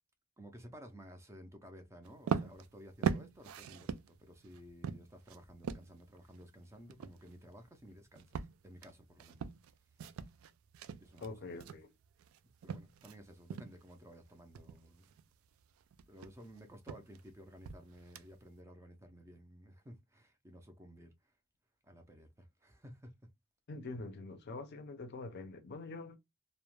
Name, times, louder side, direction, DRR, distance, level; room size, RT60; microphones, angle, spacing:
voice 1, 0.4-9.5 11.0-11.8 12.6-15.1 16.1-21.3 21.8-23.1, equal, 15° right, 0.4 m, -55 dB
sound 1, 2.0-13.2 13.5-13.9 14.3-18.6, right 6 dB, 80° right, 0.3 m, -41 dB
voice 2, 11.2-11.9 23.7-26.2, left 3 dB, 50° left, 0.5 m, -45 dB
2.3 x 2.1 x 3.0 m
head